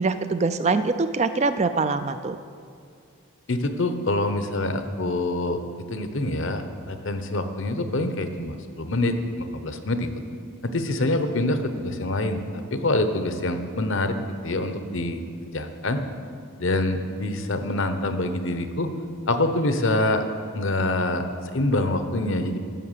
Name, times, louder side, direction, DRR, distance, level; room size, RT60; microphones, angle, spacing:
voice 1, 0.0-2.4, right 4 dB, 30° right, 11 dB, 0.3 m, -23 dB
voice 2, 3.5-5.6 5.9-10.1 10.6-14.2 14.4-16.0 16.6-18.9 19.3-20.3 20.5-21.3 21.5-22.6, left 2 dB, 60° left, 8 dB, 0.8 m, -25 dB
11.0 x 7.1 x 7.4 m, 2.4 s
head